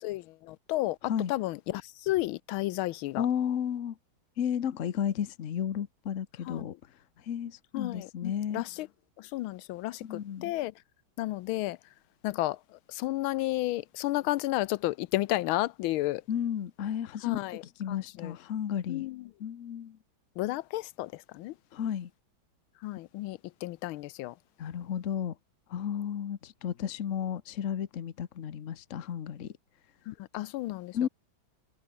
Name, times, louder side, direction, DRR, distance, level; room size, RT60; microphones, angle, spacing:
voice 1, 0.0-1.0 1.3-3.3 6.5-6.7 7.7-8.9 9.2-10.7 11.2-11.8 12.2-12.6 12.9-16.2 17.2-17.6 17.9-18.3 18.9-19.2 20.4-21.5 22.8-24.3 30.1-31.1, left 17 dB, 85° left, 1.4 m, -32 dB
voice 2, 3.2-3.9 4.4-6.7 7.3-8.6 10.0-10.5 16.3-17.4 17.8-19.1 19.4-20.0 21.7-22.1 24.6-25.3 25.7-29.5 30.9-31.1, left 9 dB, 45° left, 1.1 m, -33 dB
omnidirectional pair, 2.2 m